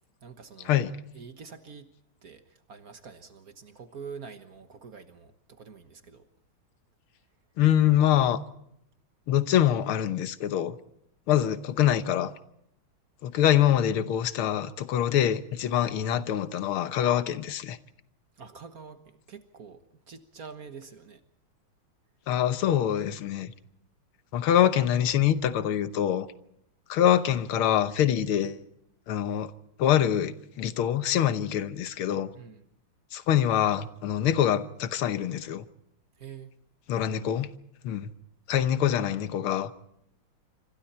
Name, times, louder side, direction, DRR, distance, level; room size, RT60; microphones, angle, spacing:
voice 1, 0.2-1.9 2.2-6.2 18.4-21.2 32.3-32.7 36.2-36.5, right 6 dB, 50° right, 1.6 m, -46 dB
voice 2, 7.6-8.4 9.3-10.8 11.3-12.3 13.2-17.8 22.3-23.5 24.3-26.3 26.9-28.6 29.1-29.5 29.8-32.3 33.1-35.7 36.9-37.5 37.8-38.1 38.5-39.7, left 10 dB, 90° left, 1.9 m, -24 dB
26.5 x 25.5 x 4.3 m
omnidirectional pair, 2.3 m